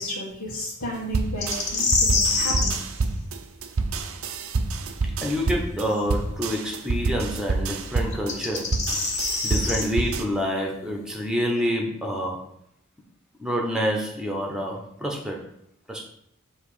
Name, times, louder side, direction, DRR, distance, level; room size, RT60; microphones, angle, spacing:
voice 1, 0.0-2.8, equal, 90° left, -7 dB, 1.5 m, -33 dB
sound 1, 1.1-10.2, right 3 dB, 75° right, 0.6 m, -27 dB
sound 2, 1.4-2.8 5.9-6.0 8.1-9.8, left 3 dB, 35° left, 1.0 m, -24 dB
voice 2, 5.2-8.8 9.1-12.5 13.4-15.4 15.9-16.0, equal, 5° right, 0 dB, 1.1 m, -28 dB
7.6 x 3.2 x 5.0 m, 0.73 s
head